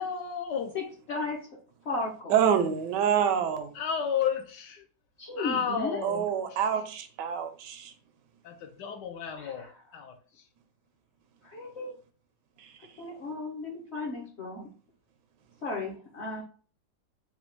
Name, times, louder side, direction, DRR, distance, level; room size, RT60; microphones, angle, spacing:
voice 1, 0.0-0.7 3.4-4.8 5.4-6.6 8.4-9.7 9.9-10.1, left 7 dB, 70° left, 1.3 m, -32 dB
voice 2, 0.7-1.5 1.8-2.3 5.2-6.0 9.3-9.7 11.4-11.9 13.0-14.7 15.6-16.4, left 2 dB, 50° left, 0.9 m, -35 dB
voice 3, 2.3-3.7 6.0-7.9, right 8 dB, 75° right, 1.2 m, -26 dB
4.0 x 2.3 x 4.4 m
omnidirectional pair, 2.0 m